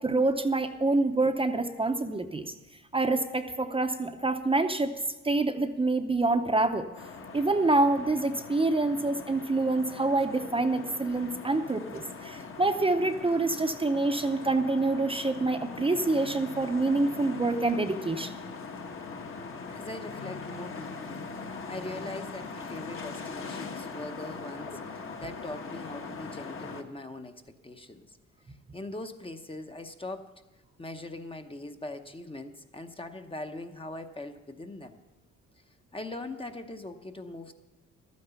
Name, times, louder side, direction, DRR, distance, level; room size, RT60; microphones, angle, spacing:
voice 1, 0.0-2.5 2.9-4.9 5.2-6.9 7.3-18.3, right 2 dB, 20° right, 6 dB, 0.7 m, -26 dB
sound 1, 6.9-26.8, left 4 dB, 45° left, 1.3 m, -41 dB
voice 2, 19.7-28.2 28.5-30.3 30.8-35.0 35.9-37.5, left 2 dB, 20° left, 6 dB, 0.8 m, -41 dB
12.0 x 9.5 x 6.9 m, 1.1 s
cardioid pair, 90°, 30 cm